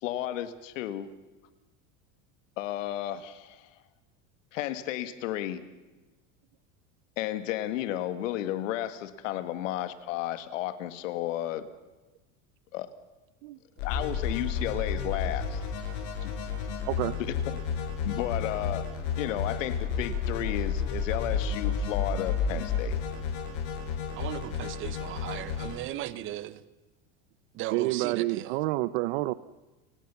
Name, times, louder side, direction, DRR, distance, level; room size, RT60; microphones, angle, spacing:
voice 1, 0.0-1.1 2.6-3.7 4.5-5.6 7.2-11.7 12.7-12.9 13.8-15.6 16.2-16.3 17.2-17.3 18.0-18.9 19.2-23.0, left 13 dB, 75° left, 12 dB, 2.2 m, -33 dB
sound 1, 13.8-25.8, left 6 dB, 60° left, 7.9 m, -31 dB
voice 2, 16.9-17.2 27.7-29.3, right 18 dB, 55° right, 16 dB, 0.8 m, -28 dB
voice 3, 24.2-26.6 27.6-28.5, right 13 dB, 30° right, 16 dB, 1.1 m, -37 dB
30.0 x 18.0 x 7.2 m, 1.1 s
supercardioid pair, 160°, 38 cm